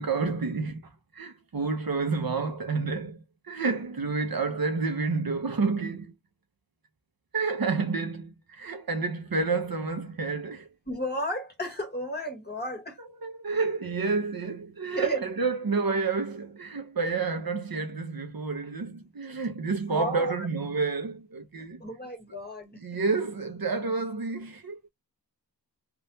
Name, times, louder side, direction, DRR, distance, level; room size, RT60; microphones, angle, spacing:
voice 1, 0.0-6.2 7.3-10.7 13.2-21.8 22.8-24.9, right 4 dB, 55° right, 0.8 m, -29 dB
voice 2, 10.9-13.0 14.9-15.2 19.9-20.5 21.8-22.8, equal, 25° left, 1.6 m, -33 dB
3.6 x 2.6 x 2.7 m
wide cardioid pair, 80°, 43 cm